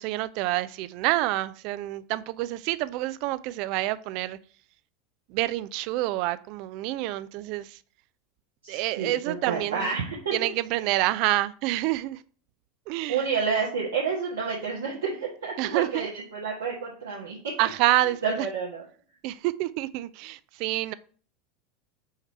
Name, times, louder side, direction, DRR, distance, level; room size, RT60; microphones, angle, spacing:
voice 1, 0.0-4.4 5.3-7.8 8.7-9.9 10.3-12.2 12.9-13.3 15.6-16.1 17.6-18.5 19.2-20.9, right 16 dB, 60° right, 0.4 m, -28 dB
voice 2, 8.6-10.4 13.1-17.4 17.8-17.9 18.2-18.8, right 5 dB, 80° right, 1.5 m, -29 dB
5.7 x 4.6 x 4.2 m
hypercardioid pair, 85°, 0 cm